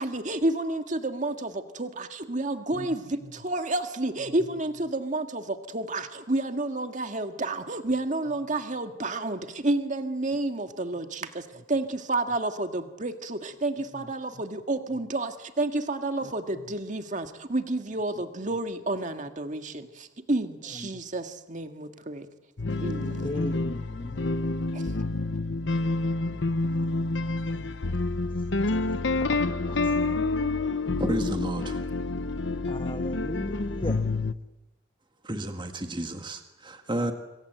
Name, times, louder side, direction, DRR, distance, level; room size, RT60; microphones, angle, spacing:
voice 1, 0.0-22.3 22.8-23.6 24.7-24.9, right 2 dB, 45° right, 1.8 m, -30 dB
sound 1, 22.6-34.3, left 3 dB, 85° left, 0.9 m, -28 dB
voice 2, 23.2-24.5 25.0-25.4 29.2-29.9 32.7-34.0 37.0-37.1, left 1 dB, 30° left, 1.3 m, -37 dB
voice 3, 31.0-31.8 35.2-37.1, right 1 dB, 25° right, 1.8 m, -31 dB
26.5 x 23.5 x 7.8 m
head